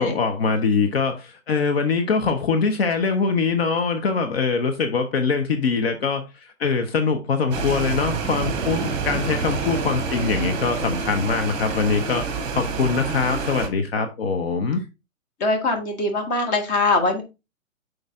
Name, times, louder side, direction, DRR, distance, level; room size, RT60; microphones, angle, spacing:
voice 1, 0.0-12.2 12.5-14.8, left 5 dB, 45° left, 1.0 m, -23 dB
sound 1, 7.5-13.7, right 4 dB, 25° right, 1.6 m, -28 dB
voice 2, 15.4-17.2, left 2 dB, 20° left, 1.3 m, -22 dB
6.3 x 5.0 x 3.6 m
figure-of-eight pair, 135°, 41 cm